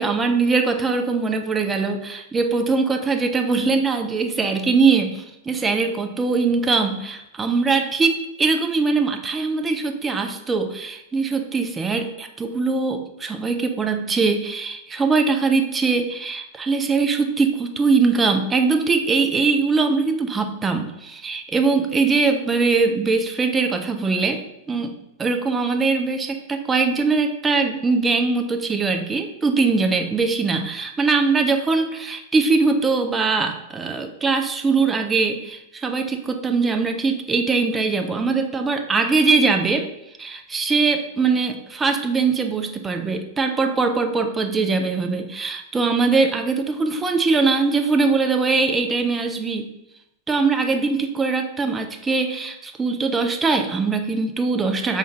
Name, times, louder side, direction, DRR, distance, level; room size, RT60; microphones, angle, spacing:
voice 1, 0.0-24.4 24.7-24.9 25.2-39.9 40.2-49.7 50.3-55.0, right 4 dB, 15° right, 5 dB, 0.4 m, -21 dB
3.7 x 2.5 x 3.2 m, 0.84 s
figure-of-eight pair, 90°, 0 cm